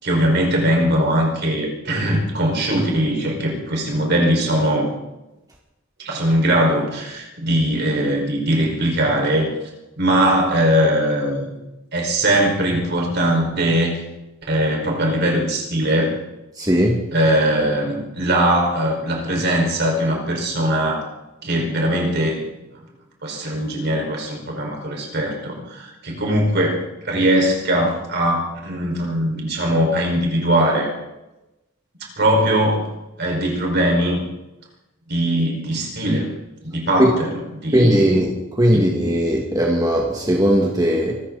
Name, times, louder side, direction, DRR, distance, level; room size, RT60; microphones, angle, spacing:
voice 1, 0.0-4.9 6.0-9.5 10.0-11.6 11.9-14.0 14.5-16.1 17.1-21.1 21.4-22.4 23.2-30.9 32.2-32.9 33.2-34.2 35.1-36.3 36.6-38.1 38.7-38.9, right 1 dB, 60° right, 0 dB, 5.1 m, -20 dB
voice 2, 16.6-17.0 37.0-37.1 37.7-41.2, equal, 20° right, 0 dB, 2.0 m, -18 dB
24.5 x 14.0 x 4.1 m, 0.98 s
head